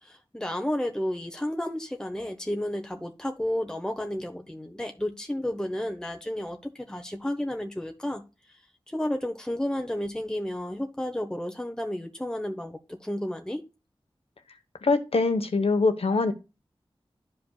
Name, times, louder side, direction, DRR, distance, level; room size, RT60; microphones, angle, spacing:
voice 1, 0.0-8.2 8.9-13.6, left 1 dB, 5° left, 3 dB, 1.0 m, -32 dB
voice 2, 14.8-16.3, left 3 dB, 90° left, 9 dB, 1.1 m, -23 dB
12.5 x 5.1 x 2.3 m, 0.28 s
wide cardioid pair, 70°, 10 cm